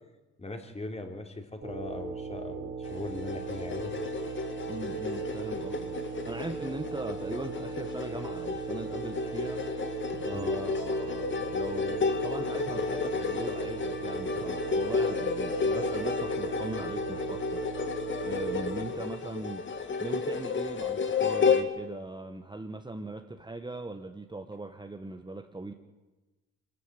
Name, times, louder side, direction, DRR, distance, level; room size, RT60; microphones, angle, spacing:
voice 1, 0.4-3.9 10.3-10.5, left 2 dB, 20° left, 4 dB, 3.0 m, -39 dB
sound 1, 1.6-18.8, right 5 dB, 35° right, 3.3 m, -38 dB
sound 2, 2.8-21.6, left 4 dB, 40° left, 1.9 m, -32 dB
voice 2, 4.7-18.0 18.2-19.6 20.0-25.7, right 2 dB, 15° right, 5 dB, 1.3 m, -40 dB
23.5 x 13.5 x 9.1 m, 1.2 s
cardioid pair, 90°, 30 cm